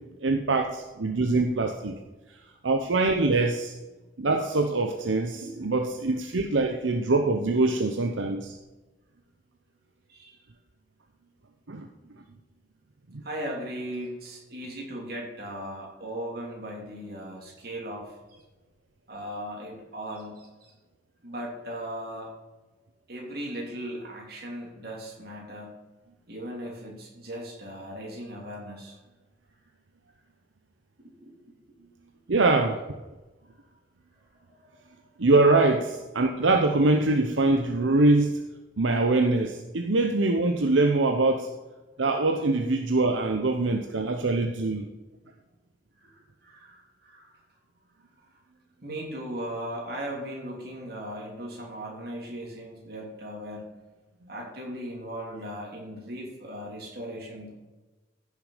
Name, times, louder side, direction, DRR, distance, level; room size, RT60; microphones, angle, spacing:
voice 1, 0.2-1.9 2.6-3.7 4.2-8.5 11.7-11.9 32.3-32.8 35.2-38.4 38.8-41.5 42.0-44.9, right 2 dB, 85° right, 4 dB, 0.8 m, -23 dB
voice 2, 10.1-10.4 13.2-18.2 19.1-20.7 21.2-22.3 23.1-25.8 26.3-29.0 31.0-31.3 34.4-35.0 46.0-47.4 48.2-48.3 48.8-53.7 54.3-57.5, equal, 50° right, -2 dB, 3.2 m, -38 dB
15.0 x 6.7 x 5.0 m, 1.1 s
head